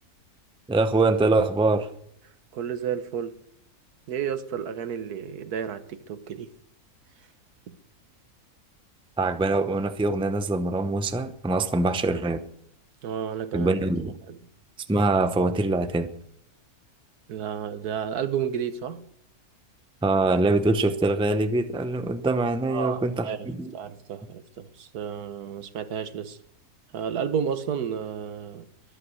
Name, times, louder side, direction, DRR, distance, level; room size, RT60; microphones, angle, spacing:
voice 1, 0.7-1.9 9.2-12.4 13.5-14.1 14.9-16.1 20.0-23.7, right 2 dB, 5° right, 0.5 m, -24 dB
voice 2, 2.5-3.4 4.1-6.5 7.7-7.8 13.0-13.7 14.3-14.4 17.3-19.1 22.7-26.4 26.9-28.7, right 8 dB, 85° right, 1.6 m, -32 dB
23.0 x 8.3 x 6.4 m
omnidirectional pair, 1.6 m